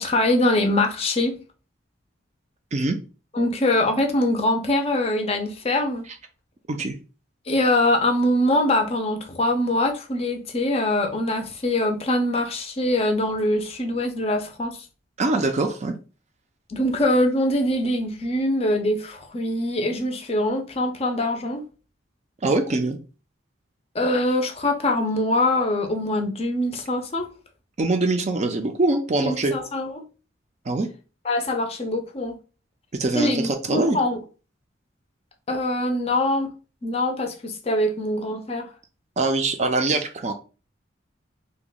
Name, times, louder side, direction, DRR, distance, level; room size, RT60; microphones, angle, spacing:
voice 1, 0.0-1.4 3.3-6.0 7.5-14.8 16.7-21.6 23.9-27.3 29.2-30.0 31.2-32.4 33.1-34.2 35.5-36.5 36.8-38.7, left 1 dB, 30° left, 0.5 m, -23 dB
voice 2, 15.2-16.0 22.4-23.0 27.8-29.5 30.7-30.9 33.0-34.0 39.2-40.3, right 2 dB, 35° right, 0.4 m, -23 dB
2.9 x 2.2 x 3.8 m
head